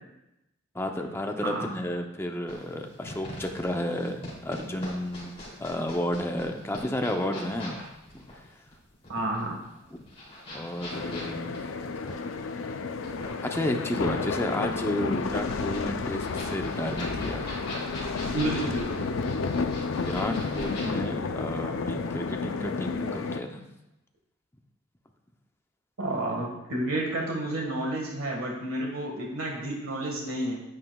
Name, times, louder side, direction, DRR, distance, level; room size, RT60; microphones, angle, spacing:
voice 1, 0.7-5.3 5.6-7.8 10.5-11.8 13.4-17.5 19.9-23.7, left 1 dB, 10° left, 3 dB, 0.6 m, -32 dB
sound 1, 2.5-21.0, left 1 dB, 30° left, 2.8 m, -42 dB
voice 2, 9.1-9.5 18.3-19.0 26.0-30.6, right 1 dB, 80° right, -1 dB, 1.6 m, -30 dB
sound 2, 10.9-23.4, left 4 dB, 70° left, 0.5 m, -31 dB
9.6 x 8.9 x 2.3 m, 0.91 s
head